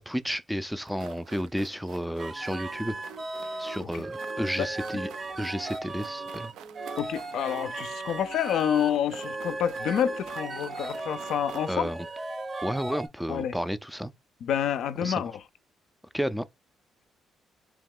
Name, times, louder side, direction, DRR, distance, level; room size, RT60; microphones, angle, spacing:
voice 1, 0.0-3.0 3.6-5.1 5.4-6.5 11.7-12.1 12.6-14.1 15.0-15.3 16.1-16.5, equal, ahead, 0.3 m, -32 dB
sound 1, 0.8-11.8, right 9 dB, 85° right, 0.3 m, -50 dB
sound 2, 2.2-13.1, right 2 dB, 40° right, 0.6 m, -37 dB
voice 2, 7.0-11.9 13.3-13.6 14.4-15.4, left 9 dB, 75° left, 0.4 m, -28 dB
2.9 x 2.3 x 3.5 m
cardioid pair, 90°, 0 cm